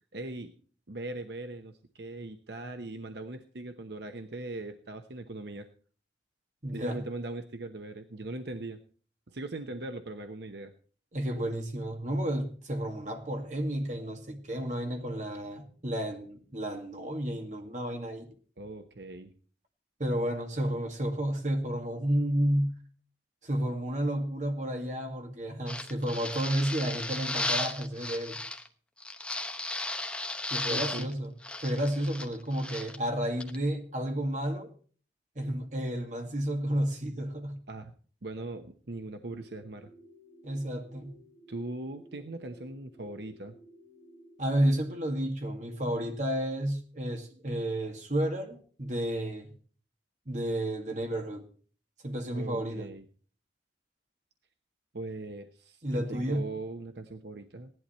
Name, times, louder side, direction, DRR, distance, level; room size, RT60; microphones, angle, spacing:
voice 1, 0.1-0.5 0.9-5.7 6.7-8.8 9.3-10.7 18.6-19.3 30.7-31.1 37.7-37.9 38.2-39.9 41.5-43.5 52.3-53.0 54.9-57.7, right 2 dB, 70° right, 0.9 m, -40 dB
voice 2, 6.6-7.0 11.1-18.3 20.0-22.7 23.4-28.4 30.5-31.3 31.6-34.7 35.4-37.6 40.4-41.1 44.4-49.5 50.3-51.4 52.0-52.9 55.8-56.5, right 1 dB, 40° right, 2.1 m, -31 dB
sound 1, 25.7-28.7 29.0-31.1 31.4-33.0 33.4-33.6, left 2 dB, 5° left, 0.9 m, -35 dB
sound 2, 38.9-45.2, equal, 10° right, 7.0 m, -56 dB
16.5 x 11.0 x 4.3 m
head